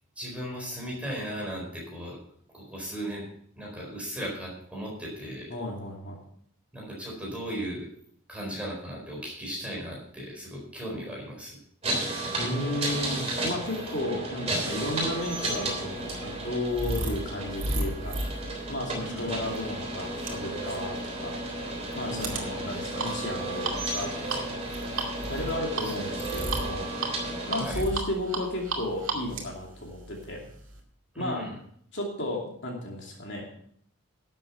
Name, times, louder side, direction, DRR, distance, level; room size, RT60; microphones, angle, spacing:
voice 1, 0.2-2.2 2.5-3.3 3.5-5.5 6.7-7.9 8.3-11.6 14.0-14.2 19.0-19.3 22.0-22.6 25.8-25.9 27.6-27.8 31.1-31.6, equal, 5° right, -3 dB, 4.2 m, -37 dB
voice 2, 5.5-6.2 12.4-18.2 18.7-21.4 21.9-24.5 25.3-26.9 27.5-30.5 31.2-31.4 31.9-33.4, left 1 dB, 50° left, -1 dB, 2.7 m, -33 dB
sound 1, 11.8-27.6, right 2 dB, 30° right, 3.4 m, -33 dB
sound 2, 15.1-30.8, right 2 dB, 60° right, 2.4 m, -35 dB
12.0 x 7.6 x 5.8 m, 0.64 s
head